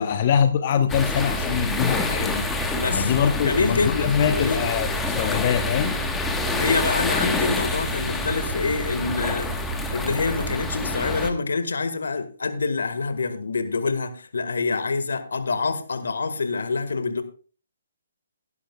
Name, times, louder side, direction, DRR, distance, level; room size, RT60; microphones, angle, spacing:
voice 1, 0.0-2.4 2.9-6.0, left 8 dB, 40° left, 8 dB, 0.9 m, -23 dB
sound 1, 0.9-11.3, left 1 dB, 5° left, 1.3 m, -27 dB
voice 2, 2.7-3.1 3.4-4.6 6.5-9.5 9.9-17.2, left 4 dB, 75° left, 10 dB, 1.7 m, -26 dB
16.5 x 11.0 x 2.3 m, 0.39 s
figure-of-eight pair, 140°, 0 cm